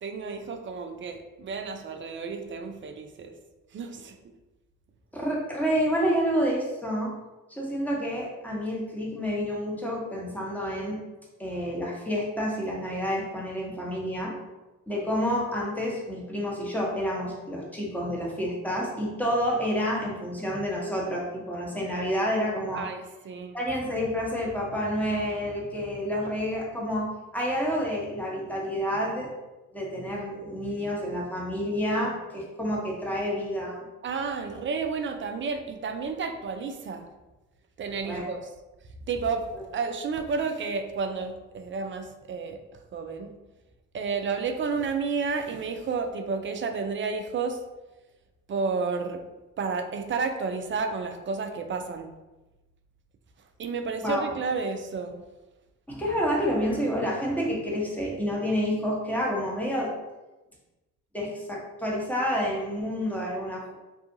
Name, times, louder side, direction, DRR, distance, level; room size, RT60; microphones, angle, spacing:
voice 1, 0.0-3.3 3.7-4.2 22.7-23.6 34.0-37.1 37.8-38.5 39.1-39.5 39.7-42.6 42.9-43.3 43.9-47.6 48.5-49.2 49.6-52.1 53.6-55.2, right 4 dB, 30° right, 6 dB, 0.4 m, -31 dB
voice 2, 5.1-7.1 7.5-11.0 11.4-14.3 14.9-22.9 23.5-29.3 29.7-33.8 38.0-38.2 54.0-54.3 55.9-59.9 61.1-63.7, equal, 5° left, -4 dB, 1.0 m, -29 dB
2.7 x 2.4 x 2.6 m, 1.1 s
hypercardioid pair, 45°, 39 cm